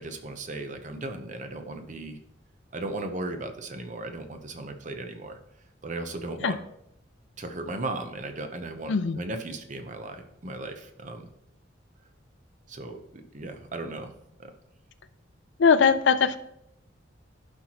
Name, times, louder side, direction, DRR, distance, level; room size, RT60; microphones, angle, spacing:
voice 1, 0.0-2.2 2.7-5.4 5.8-6.6 7.4-11.3 12.7-14.1 14.4-14.5, right 2 dB, 40° right, 6 dB, 0.7 m, -36 dB
voice 2, 15.6-16.4, left 6 dB, 65° left, 12 dB, 0.4 m, -20 dB
11.5 x 4.4 x 2.9 m, 0.77 s
head